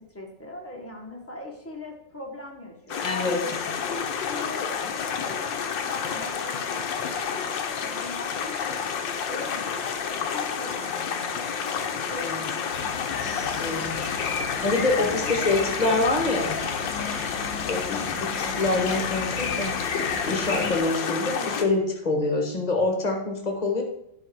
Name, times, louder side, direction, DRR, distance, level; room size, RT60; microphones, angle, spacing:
voice 1, 0.1-3.8 4.2-4.9 5.2-8.8 9.2-9.7 10.1-13.4 15.0-16.8 17.9-18.1, left 2 dB, 10° left, 0 dB, 1.4 m, -41 dB
sound 1, 2.9-21.6, left 7 dB, 80° left, 1.6 m, -30 dB
voice 2, 3.0-3.4 12.1-12.4 13.5-16.6 17.7-23.8, left 2 dB, 25° left, 2 dB, 1.5 m, -26 dB
sound 2, 12.7-20.8, left 4 dB, 55° left, 1.6 m, -34 dB
11.0 x 5.3 x 4.7 m, 0.78 s
omnidirectional pair, 2.0 m